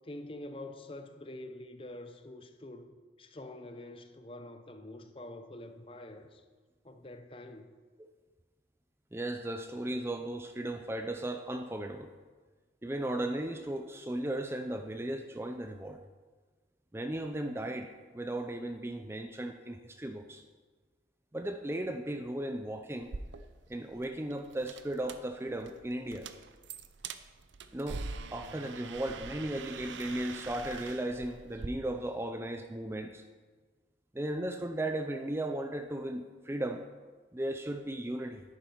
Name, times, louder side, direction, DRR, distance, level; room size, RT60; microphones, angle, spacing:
voice 1, 0.0-6.4 6.8-7.7, left 1 dB, 30° left, 0.7 m, -46 dB
voice 2, 9.1-12.1 12.8-16.0 16.9-20.4 21.3-23.1 23.7-26.3 27.7-33.2 34.1-36.8 37.3-38.4, right 1 dB, 15° right, 0.4 m, -36 dB
sound 1, 23.0-31.7, right 4 dB, 85° right, 0.6 m, -44 dB
10.5 x 9.6 x 4.5 m
head